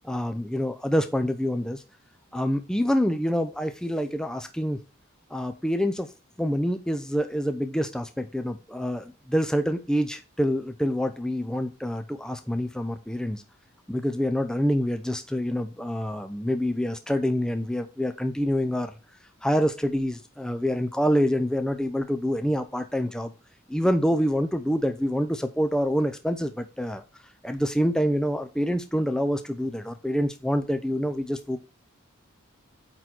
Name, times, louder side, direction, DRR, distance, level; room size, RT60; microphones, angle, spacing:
voice 1, 0.0-1.8 2.3-4.8 5.3-6.1 6.4-13.4 13.9-18.9 19.4-23.3 23.7-27.0 27.4-31.6, equal, 5° left, 7 dB, 0.5 m, -26 dB
8.9 x 4.0 x 4.4 m, 0.31 s
head